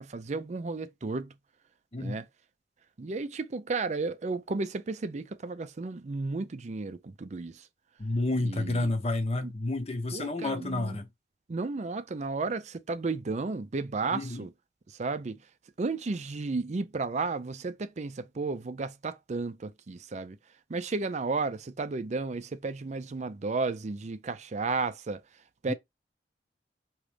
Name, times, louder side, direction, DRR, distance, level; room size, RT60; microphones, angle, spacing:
voice 1, 0.0-1.3 2.0-2.3 3.0-7.7 8.4-8.9 9.4-9.5 10.1-11.0 11.5-14.5 14.9-15.4 15.8-20.4 20.7-25.2 25.6-25.7, right 3 dB, 40° right, 0.5 m, -33 dB
voice 2, 1.9-2.2 8.0-11.1 14.1-14.5 25.7-25.8, left 2 dB, 35° left, 0.8 m, -30 dB
5.0 x 3.0 x 3.3 m
head